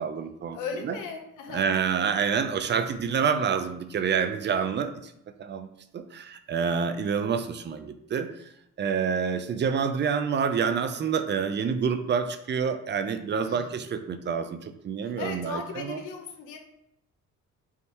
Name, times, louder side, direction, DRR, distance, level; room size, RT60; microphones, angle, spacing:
voice 1, 0.0-0.6 0.8-0.9 1.5-5.1 5.4-5.7 5.9-8.3 8.8-16.0, right 6 dB, 35° right, 9 dB, 0.4 m, -27 dB
voice 2, 0.5-1.6 13.4-13.7 15.0-16.6, left 5 dB, 90° left, 3 dB, 0.8 m, -37 dB
3.6 x 2.7 x 4.3 m, 0.80 s
cardioid pair, 90°, 30 cm